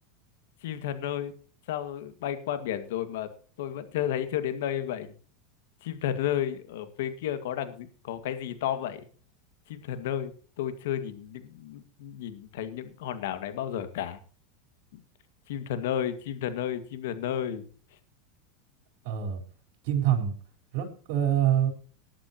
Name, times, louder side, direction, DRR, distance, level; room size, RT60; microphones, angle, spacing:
voice 1, 0.6-1.3 1.7-3.3 3.6-5.1 5.8-9.1 9.7-10.3 10.6-14.2 14.9-15.0 15.5-17.7, left 10 dB, 75° left, 10 dB, 2.0 m, -32 dB
voice 2, 19.0-19.4 19.8-20.3 20.7-21.7, right 10 dB, 65° right, 2 dB, 4.4 m, -25 dB
19.5 x 11.5 x 3.0 m, 0.41 s
hypercardioid pair, 110°, 0 cm